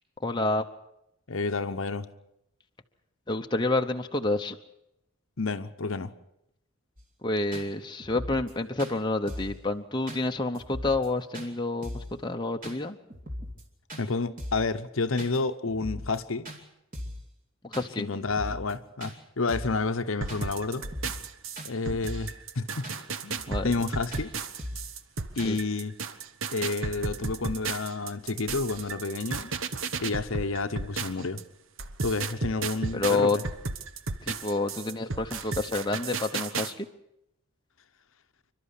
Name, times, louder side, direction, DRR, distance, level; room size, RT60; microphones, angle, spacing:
voice 1, 0.2-0.7 3.3-4.6 7.2-13.0 17.6-18.1 23.5-23.7 25.4-25.6 32.9-33.4 34.2-36.9, left 2 dB, 20° left, 4 dB, 0.8 m, -29 dB
voice 2, 1.3-2.1 5.4-6.1 14.0-16.5 18.0-20.9 21.6-22.9 23.2-24.3 25.4-25.9 26.5-29.5 30.0-31.4 32.0-33.4, left 3 dB, 60° left, 10 dB, 0.9 m, -30 dB
sound 1, 7.0-7.1 7.5-7.7 8.0-8.5 8.8-8.9 9.3-9.6 10.1-10.2 10.5-11.1 11.3-11.5 11.8-12.1 12.6-12.8 13.1-13.6 13.9-14.0 14.4-14.7 15.2-15.4 15.6-16.2 16.4-16.6 16.9-17.2 17.7-17.9 18.2-18.7 19.0-19.1 19.5-19.8 20.3-20.4 20.8-21.3 21.6-21.7 22.0-22.3 22.8-23.0 23.3-23.8 24.1-24.3 24.6-24.9 25.4-25.6, equal, 35° right, 2.8 m, -39 dB
sound 2, 20.2-31.4 31.8-36.7, right 4 dB, 60° right, 1.1 m, -34 dB
28.0 x 12.5 x 8.4 m, 0.84 s
head